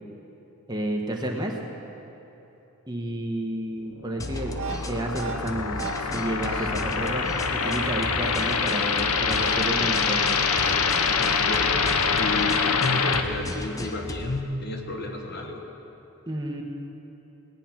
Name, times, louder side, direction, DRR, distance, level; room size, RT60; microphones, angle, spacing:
voice 1, 0.7-1.6 2.9-10.3 16.3-16.6, right 1 dB, 20° right, 1 dB, 1.1 m, -31 dB
sound 1, 4.0-13.2, left 5 dB, 85° left, 0.8 m, -25 dB
sound 2, 4.2-14.4, left 2 dB, 15° left, 0.5 m, -36 dB
sound 3, 4.5-11.5, right 3 dB, 70° right, 1.2 m, -39 dB
voice 2, 11.2-15.6, left 2 dB, 45° left, 2 dB, 1.3 m, -31 dB
18.0 x 9.8 x 5.9 m, 3.0 s
head